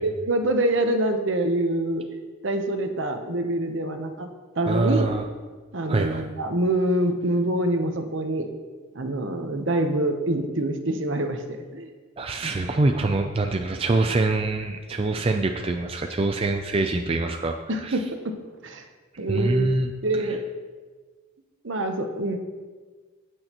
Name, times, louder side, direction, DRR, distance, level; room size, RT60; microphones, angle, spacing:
voice 1, 0.0-2.0 2.4-4.3 4.5-5.1 5.7-8.5 8.9-11.9 17.7-18.3 18.6-18.8 19.2-19.7 20.0-20.4 21.6-22.4, right 1 dB, 60° right, 6 dB, 0.9 m, -25 dB
voice 2, 4.7-5.2 5.9-6.3 12.2-17.6 17.8-18.0 19.3-19.9, right 2 dB, 25° right, 4 dB, 0.4 m, -24 dB
16.5 x 6.4 x 3.0 m, 1.4 s
head